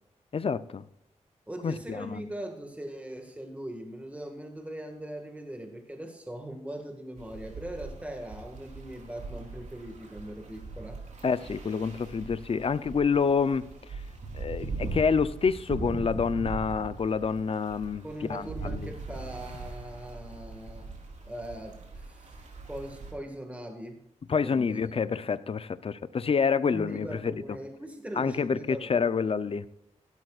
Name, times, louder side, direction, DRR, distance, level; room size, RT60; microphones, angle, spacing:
voice 1, 0.3-0.8 1.6-2.2 11.2-13.6 13.9-14.0 14.3-18.9 24.3-27.6 28.2-29.8, left 5 dB, 50° left, 15 dB, 0.7 m, -28 dB
voice 2, 1.5-11.0 18.0-20.9 21.2-22.4 22.7-24.0 24.4-25.0 26.7-29.1, right 1 dB, 10° right, 4 dB, 1.9 m, -40 dB
sound 1, 7.2-23.1, right 3 dB, 80° right, 3.9 m, -40 dB
16.5 x 12.5 x 2.5 m, 0.79 s
cardioid pair, 80°, 12 cm